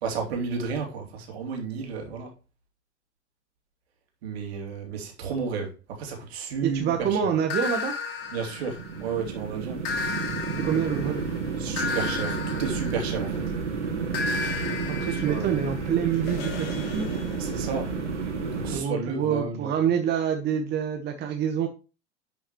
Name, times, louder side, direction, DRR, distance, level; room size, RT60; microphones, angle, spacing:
voice 1, 0.0-2.3 4.2-7.3 8.3-9.8 11.6-13.4 15.1-15.6 17.4-17.9 18.6-19.7, right 5 dB, 60° right, 2.7 m, -32 dB
voice 2, 6.6-7.9 10.6-11.2 14.9-17.1 18.7-21.7, right 8 dB, 30° right, 1.2 m, -26 dB
sound 1, 7.5-9.2 9.8-13.5 14.1-17.9, left 5 dB, 55° left, 2.3 m, -34 dB
sound 2, 8.3-18.8, right 5 dB, 80° right, 2.3 m, -31 dB
11.0 x 5.7 x 3.1 m
figure-of-eight pair, 85°, 35 cm